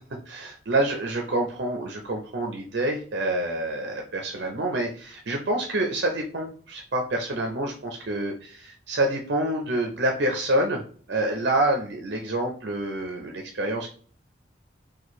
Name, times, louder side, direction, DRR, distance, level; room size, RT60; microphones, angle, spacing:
voice 1, 0.3-10.8 11.1-13.9, right 1 dB, 65° right, 3 dB, 0.6 m, -27 dB
4.4 x 2.3 x 3.0 m, 0.44 s
head